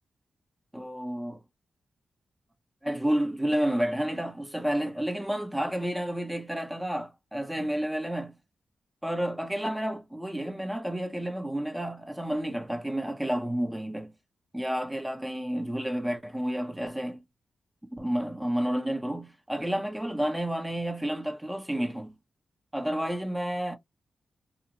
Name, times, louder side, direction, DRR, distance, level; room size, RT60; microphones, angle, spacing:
voice 1, 0.7-1.4 2.8-8.4 9.0-14.1 14.5-17.2 17.9-22.1 22.7-23.8, right 1 dB, 10° right, 0.8 m, -30 dB
2.5 x 2.1 x 2.8 m
supercardioid pair, 45°, 0 cm